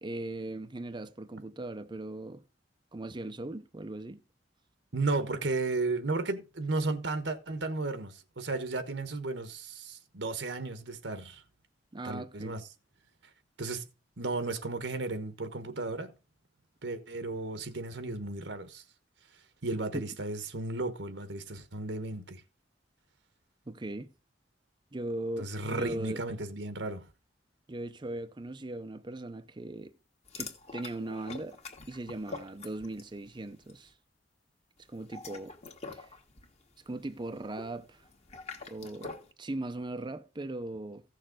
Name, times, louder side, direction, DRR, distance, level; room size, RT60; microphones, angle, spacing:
voice 1, 0.0-2.4 2.9-4.2 11.9-12.6 19.9-20.0 23.7-24.1 24.9-26.2 27.7-29.9 30.4-31.6 31.9-33.9 34.9-35.6 35.9-36.1 36.9-38.0 38.7-41.0, right 2 dB, 25° right, 0.6 m, -39 dB
voice 2, 4.9-11.4 12.0-12.6 13.6-13.8 14.2-16.1 16.8-18.8 19.6-22.4 25.4-27.1, right 3 dB, 80° right, 1.3 m, -34 dB
sound 1, 30.3-33.2 33.5-33.8 34.9-39.3, left 4 dB, 35° left, 1.7 m, -45 dB
15.5 x 6.6 x 3.7 m
head